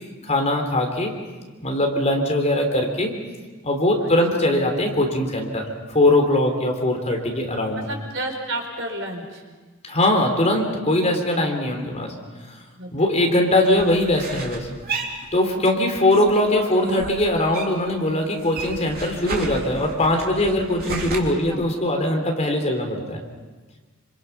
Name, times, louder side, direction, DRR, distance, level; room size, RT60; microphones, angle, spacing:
voice 1, 0.2-1.1 1.6-3.1 3.6-5.7 5.9-7.9 9.9-12.1 12.9-14.7 15.3-23.2, left 1 dB, 30° left, 2 dB, 3.5 m, -21 dB
voice 2, 7.7-9.4 12.8-13.3 21.5-21.6, right 1 dB, 60° right, 2 dB, 5.0 m, -32 dB
sound 1, 13.7-15.8 16.1-17.9 18.2-21.2, right 3 dB, 45° right, 3.4 m, -33 dB
27.0 x 26.5 x 5.8 m, 1.3 s
head